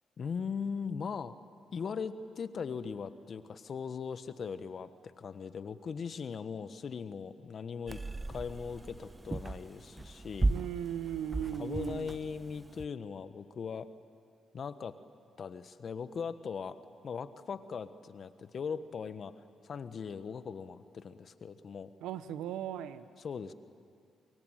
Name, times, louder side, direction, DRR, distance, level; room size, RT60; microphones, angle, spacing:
voice 1, 0.2-1.3 1.7-8.0 8.3-10.5 11.6-13.9 14.5-14.9 15.4-16.8 17.0-19.3 19.6-21.9 23.2-23.5, left 6 dB, 55° left, 12 dB, 1.2 m, -39 dB
sound 1, 7.9-12.9, right 2 dB, 25° right, 0.7 m, -36 dB
voice 2, 10.5-12.1 22.0-23.0, right 10 dB, 85° right, 12 dB, 1.0 m, -37 dB
24.5 x 23.0 x 9.2 m, 2.4 s
supercardioid pair, 60°, 0 cm